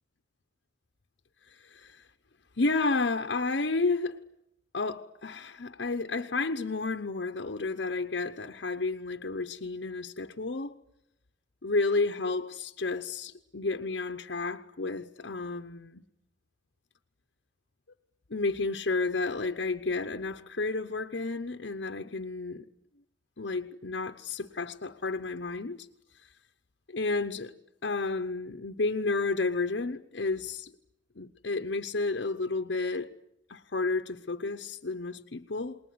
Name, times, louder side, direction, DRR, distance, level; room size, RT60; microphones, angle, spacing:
voice 1, 1.5-2.1 2.6-4.2 4.7-10.7 11.6-16.0 18.3-22.7 23.4-25.9 26.9-27.5 27.8-30.7 31.2-33.1 33.5-35.8, left 3 dB, 75° left, 0.9 m, -31 dB
28.5 x 20.5 x 9.6 m
head